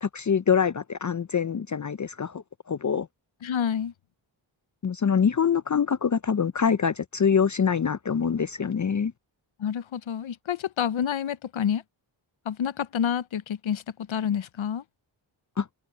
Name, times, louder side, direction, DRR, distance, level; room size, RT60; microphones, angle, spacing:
voice 1, 0.0-3.1 4.8-9.1 15.6-15.7, left 7 dB, 35° left, 0.6 m, -25 dB
voice 2, 3.4-3.9 9.6-11.8 12.4-14.8, left 8 dB, 70° left, 0.9 m, -28 dB
open air
cardioid pair, 45°, 49 cm